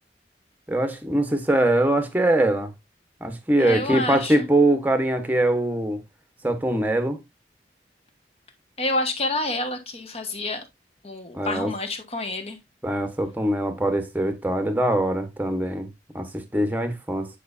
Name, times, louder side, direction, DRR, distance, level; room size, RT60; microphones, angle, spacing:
voice 1, 0.7-2.7 3.2-6.0 6.4-7.2 11.3-11.7 12.8-15.9 16.1-17.3, right 1 dB, 10° right, 1.1 m, -22 dB
voice 2, 3.6-4.5 8.8-10.6 11.0-12.6, left 2 dB, 35° left, 1.5 m, -28 dB
9.3 x 5.2 x 2.6 m
head